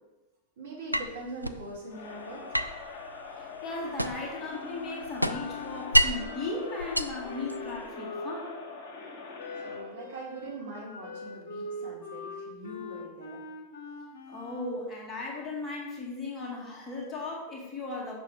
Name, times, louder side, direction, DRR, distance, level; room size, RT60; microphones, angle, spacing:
voice 1, 0.6-2.7 9.5-13.4, right 2 dB, 60° right, -4 dB, 2.2 m, -42 dB
sound 1, 0.9-1.6 2.5-4.4 4.7-6.3 6.8-7.9, equal, 90° right, 0.3 m, -29 dB
Crowd, 1.9-10.0, left 4 dB, 45° left, 1.7 m, -43 dB
voice 2, 3.4-8.6 14.3-18.2, left 3 dB, 20° left, -2 dB, 1.8 m, -37 dB
Wind instrument woodwind instrument, 4.5-8.6 9.4-14.8, left 2 dB, 60° left, 1.0 m, -42 dB
6.6 x 6.1 x 3.6 m, 1.0 s
figure-of-eight pair, 90°, 0 cm